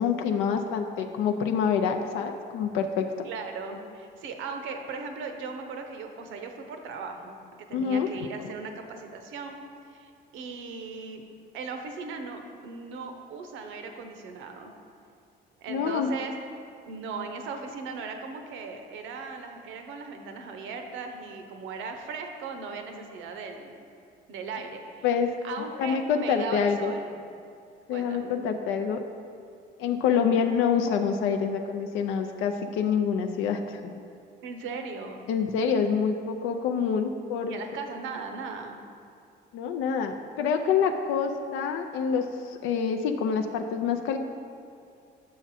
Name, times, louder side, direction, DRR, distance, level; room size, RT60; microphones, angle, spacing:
voice 1, 0.0-3.1 7.7-8.5 15.7-16.1 25.0-25.3 25.8-27.0 27.9-29.1 29.8-34.0 35.3-37.6 39.5-44.2, left 6 dB, 80° left, 4 dB, 0.4 m, -26 dB
voice 2, 3.2-7.4 7.7-9.6 9.9-11.2 11.5-14.7 15.6-16.3 16.9-23.7 24.3-25.0 25.4-27.2 27.9-28.4 34.4-35.2 37.5-38.8, right 4 dB, 80° right, 5 dB, 0.7 m, -38 dB
6.1 x 5.8 x 4.1 m, 2.4 s
cardioid pair, 90°, 20 cm